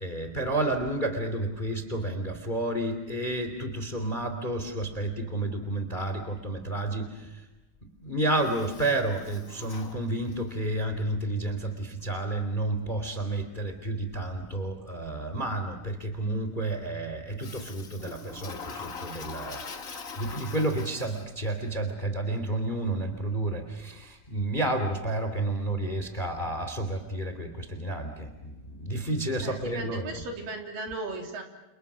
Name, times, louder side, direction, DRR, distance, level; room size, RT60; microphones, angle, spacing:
voice 1, 0.0-7.4 8.0-19.9 20.2-30.0, right 2 dB, 15° left, 7 dB, 2.7 m, -31 dB
Toilet flush, 8.4-10.6 17.4-21.5, left 5 dB, 85° left, 0.7 m, -42 dB
voice 2, 29.4-31.4, right 2 dB, 65° right, 2 dB, 5.0 m, -36 dB
29.5 x 29.5 x 6.3 m, 1.0 s
omnidirectional pair, 4.2 m